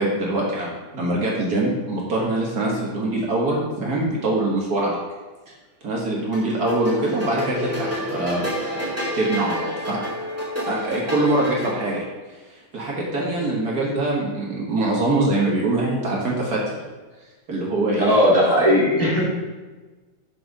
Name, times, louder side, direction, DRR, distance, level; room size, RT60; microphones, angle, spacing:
voice 1, 0.0-5.0 5.8-10.0 10.7-12.1 12.7-16.8 17.5-18.1, right 2 dB, 55° right, -3 dB, 1.9 m, -23 dB
sound 1, 6.3-12.0, left 1 dB, 10° right, 1.9 m, -30 dB
voice 2, 18.0-19.2, left 1 dB, 10° left, -6 dB, 1.8 m, -17 dB
6.5 x 6.0 x 5.2 m, 1.3 s
omnidirectional pair, 2.0 m